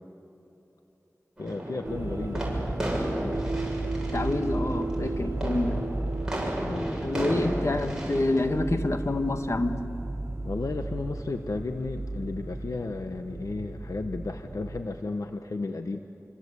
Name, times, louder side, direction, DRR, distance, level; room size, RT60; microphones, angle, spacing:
voice 1, 1.4-4.1 6.6-7.0 10.4-16.0, left 3 dB, 75° left, 6 dB, 1.0 m, -34 dB
sound 1, 1.4-8.5, right 1 dB, 10° right, 7.3 m, -34 dB
sound 2, 1.8-14.8, right 2 dB, 50° right, 3.2 m, -34 dB
voice 2, 4.1-5.9 7.0-9.9, left 2 dB, 55° left, 7 dB, 1.6 m, -27 dB
27.5 x 25.5 x 8.3 m, 2.8 s
wide cardioid pair, 60°, 6 cm